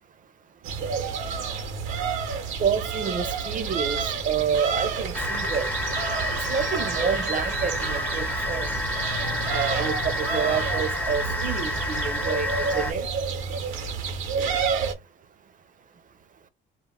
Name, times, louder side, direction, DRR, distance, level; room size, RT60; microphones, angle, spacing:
sound 1, 0.6-14.9, right 5 dB, 90° right, 0.9 m, -30 dB
voice 1, 2.6-5.7 6.5-8.7 9.5-13.1, right 7 dB, 40° right, 0.5 m, -28 dB
sound 2, 5.1-12.9, left 2 dB, 10° left, 0.4 m, -29 dB
2.4 x 2.1 x 3.5 m
cardioid pair, 90°, 20 cm